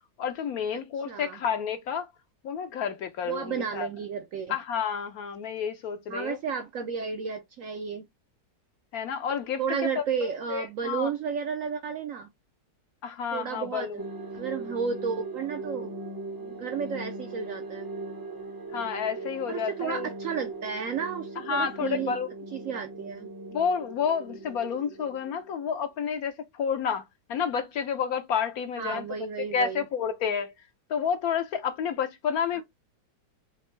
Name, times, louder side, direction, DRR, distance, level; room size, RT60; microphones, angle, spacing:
voice 1, 0.2-2.1 2.4-3.9 4.5-6.4 8.9-11.1 13.0-14.0 18.7-20.1 21.4-22.3 23.5-29.0 29.5-30.5 30.9-32.6, left 7 dB, 70° left, 0.9 m, -30 dB
voice 2, 1.1-1.4 3.3-4.6 6.1-8.0 9.6-12.3 13.3-14.0 14.3-15.9 16.4-17.9 19.5-22.2 22.5-23.3 28.8-29.8, right 6 dB, 65° right, 0.8 m, -32 dB
sound 1, 14.0-25.8, right 3 dB, 25° right, 0.4 m, -39 dB
4.3 x 2.9 x 3.1 m
omnidirectional pair, 1.9 m